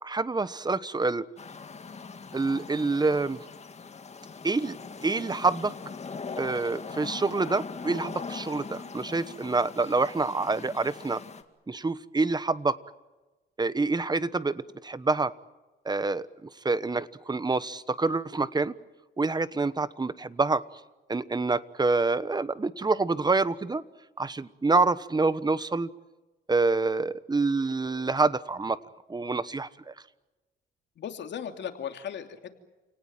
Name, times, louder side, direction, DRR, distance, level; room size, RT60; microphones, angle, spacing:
voice 1, 0.0-1.3 2.3-3.4 4.4-4.8 5.0-5.7 6.4-11.2 11.7-12.8 13.6-15.3 15.8-18.7 19.2-20.6 21.1-23.8 24.2-25.9 26.5-28.8 29.1-29.9, right 3 dB, 20° right, 16 dB, 1.2 m, -27 dB
sound 1, 1.4-11.4, left 5 dB, 35° left, 2.2 m, -41 dB
voice 2, 31.0-32.5, left 8 dB, 65° left, 6 dB, 3.0 m, -37 dB
29.0 x 18.5 x 9.1 m, 1.1 s
cardioid pair, 90°, 20 cm